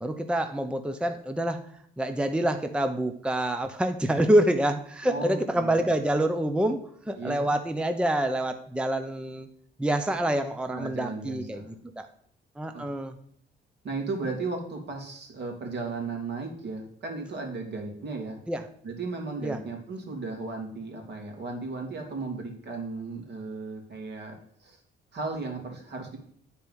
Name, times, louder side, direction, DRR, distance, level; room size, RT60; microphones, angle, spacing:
voice 1, 0.0-1.6 2.0-9.5 9.8-12.1 12.6-13.1 18.5-18.6 19.4-19.6, right 1 dB, 5° right, 8 dB, 0.6 m, -27 dB
voice 2, 5.0-5.8 7.2-7.5 10.7-11.6 12.7-12.8 13.8-18.4 18.8-24.8 25.1-26.2, right 3 dB, 60° right, 2 dB, 2.5 m, -35 dB
9.4 x 4.4 x 5.5 m, 0.63 s
cardioid pair, 90°, 20 cm